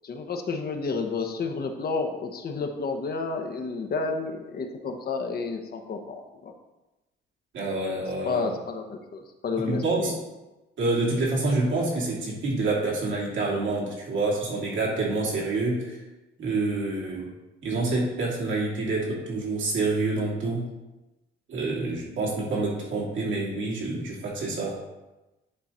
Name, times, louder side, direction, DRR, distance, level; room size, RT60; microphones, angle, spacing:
voice 1, 0.0-6.5 8.2-10.1, left 4 dB, 50° left, 4 dB, 1.0 m, -31 dB
voice 2, 7.5-8.4 9.7-10.1 10.8-16.0 16.4-17.3 17.6-20.7 21.5-24.8, right 2 dB, 75° right, -5 dB, 2.8 m, -27 dB
9.9 x 4.0 x 4.3 m, 1.0 s
cardioid pair, 90°, 20 cm